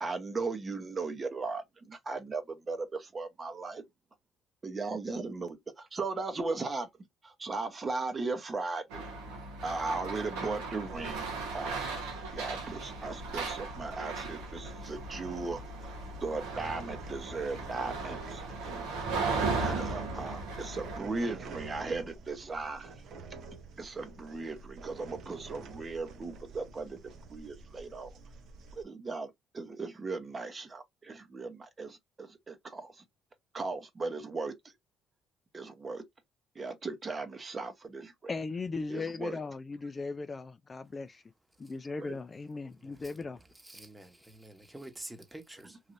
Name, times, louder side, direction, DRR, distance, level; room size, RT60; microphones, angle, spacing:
voice 1, 0.0-3.8 4.6-6.9 7.2-8.8 9.6-11.2 11.5-11.9 12.3-15.6 16.2-18.4 19.3-22.9 23.8-27.0 27.3-28.1 28.8-32.9 33.5-34.5 35.5-36.0 36.6-38.1 38.9-39.4, right 3 dB, 35° right, 0.8 m, -37 dB
sound 1, 8.9-21.0, right 3 dB, 85° right, 1.1 m, -37 dB
sound 2, 10.9-28.8, right 4 dB, 65° right, 0.7 m, -48 dB
voice 2, 38.3-41.2 41.6-43.4, left 4 dB, 35° left, 0.3 m, -37 dB
voice 3, 42.7-45.8, right 1 dB, 10° right, 1.1 m, -49 dB
3.2 x 2.6 x 2.5 m
supercardioid pair, 65°, 0 cm